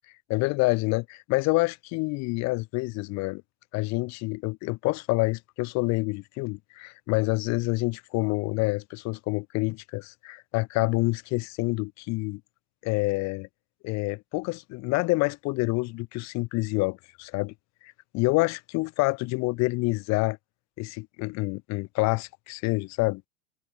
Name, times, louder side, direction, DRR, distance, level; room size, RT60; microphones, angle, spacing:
voice 1, 0.3-3.4 3.7-12.4 12.8-13.5 13.8-17.5 17.8-20.4 20.8-23.2, left 24 dB, 40° left, 0.8 m, -27 dB
hypercardioid pair, 120°, 44 cm